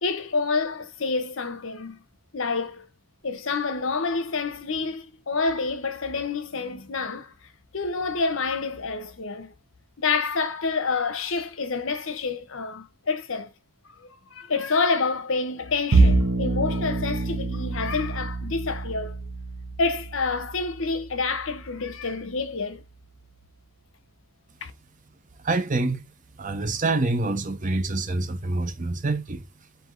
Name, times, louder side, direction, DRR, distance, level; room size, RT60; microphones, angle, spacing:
voice 1, 0.0-2.0 2.3-2.9 3.2-7.3 7.7-9.5 10.0-13.5 14.3-19.2 19.8-22.8 24.6-24.7, left 4 dB, 65° left, 0.9 m, -28 dB
Bowed string instrument, 15.9-22.4, right 3 dB, 65° right, 0.8 m, -26 dB
voice 2, 25.4-26.1 26.4-29.4, right 2 dB, 35° right, 0.7 m, -26 dB
4.6 x 2.6 x 3.8 m
head